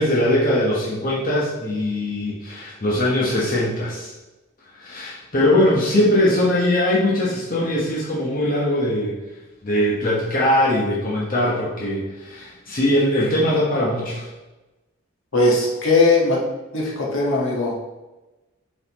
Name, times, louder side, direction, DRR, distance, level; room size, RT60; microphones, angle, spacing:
voice 1, 0.0-4.1 4.8-9.1 9.6-14.3, left 1 dB, 40° left, -6 dB, 1.0 m, -21 dB
voice 2, 15.3-16.4 16.7-17.8, left 2 dB, 75° left, -4 dB, 1.5 m, -19 dB
7.9 x 4.0 x 3.0 m, 1.1 s
head